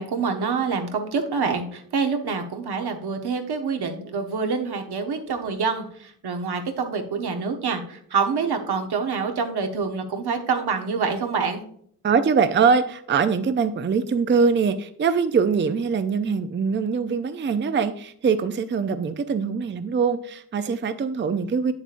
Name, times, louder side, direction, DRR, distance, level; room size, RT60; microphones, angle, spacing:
voice 1, 0.0-11.6, right 5 dB, 80° right, 5 dB, 1.1 m, -26 dB
voice 2, 12.0-21.7, right 5 dB, 30° right, 11 dB, 0.4 m, -23 dB
8.0 x 7.2 x 2.5 m, 0.62 s
cardioid pair, 85°, 39 cm